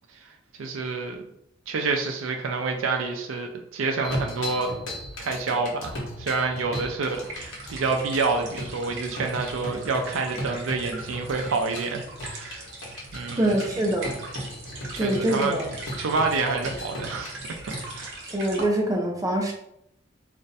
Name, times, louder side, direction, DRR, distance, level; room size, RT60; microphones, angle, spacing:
voice 1, 0.6-1.2 1.7-4.7 5.2-12.7 13.1-13.6 14.9-15.6 16.0-17.4 17.9-18.2, right 4 dB, 75° right, 4 dB, 0.4 m, -28 dB
sound 1, 4.0-18.0, equal, 80° left, 0.9 m, -37 dB
sound 2, 7.1-18.6, right 2 dB, 60° right, 0.8 m, -41 dB
voice 2, 13.4-14.2 15.0-15.7 18.3-19.5, right 1 dB, 15° right, 1 dB, 0.5 m, -24 dB
2.5 x 2.1 x 4.0 m, 0.77 s
head